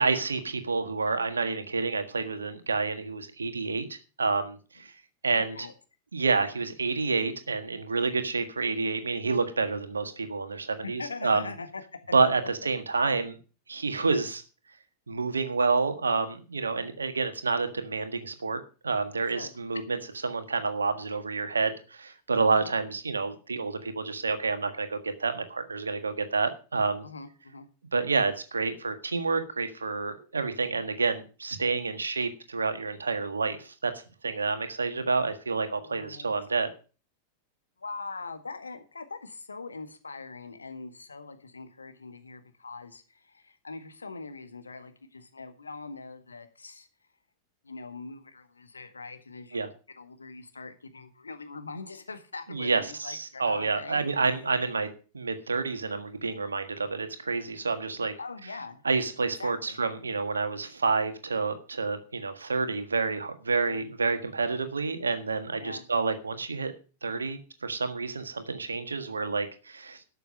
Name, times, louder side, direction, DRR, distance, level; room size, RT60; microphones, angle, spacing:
voice 1, 0.0-4.9 5.2-5.5 6.1-11.4 12.1-13.4 13.7-14.4 15.1-20.0 20.2-27.1 27.9-36.7 49.5-49.7 52.5-54.9 55.1-58.1 58.8-66.7 67.0-70.0, right 4 dB, 75° right, 9 dB, 1.6 m, -29 dB
voice 2, 5.3-5.7 10.8-11.8 19.3-19.5 22.5-22.7 27.0-27.7 35.8-36.3 37.8-46.9 47.6-49.6 50.0-54.5 58.2-58.8 59.4-59.8 63.6-63.9 65.6-65.9, left 4 dB, 75° left, 8 dB, 1.6 m, -42 dB
12.5 x 6.8 x 6.5 m, 0.36 s
figure-of-eight pair, 90°, 0 cm